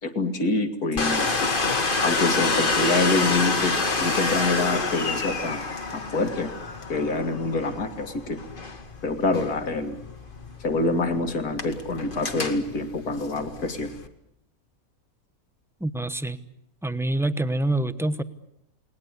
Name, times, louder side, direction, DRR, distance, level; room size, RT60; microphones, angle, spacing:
voice 1, 0.0-1.4 2.0-5.6 5.9-6.5 6.9-8.4 9.0-10.0 10.6-13.9, left 3 dB, 80° left, 7 dB, 2.7 m, -26 dB
Domestic sounds home sounds, 1.0-14.1, left 3 dB, 35° left, 1.8 m, -28 dB
voice 2, 15.8-16.4 16.8-18.2, right 2 dB, ahead, 12 dB, 0.8 m, -26 dB
29.5 x 20.0 x 8.3 m, 0.77 s
omnidirectional pair, 1.6 m